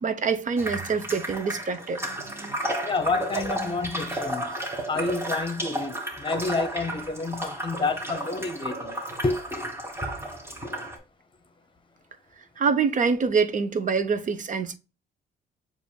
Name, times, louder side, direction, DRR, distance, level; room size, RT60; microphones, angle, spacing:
voice 1, 0.0-2.6 3.3-3.6 12.6-14.7, right 5 dB, 40° right, 0.7 m, -26 dB
sound 1, 0.6-11.0, right 1 dB, 10° right, 1.2 m, -33 dB
voice 2, 2.8-4.6 4.9-9.0 9.2-9.4, left 3 dB, 25° left, 0.9 m, -29 dB
6.9 x 2.5 x 2.2 m
cardioid pair, 90°, 20 cm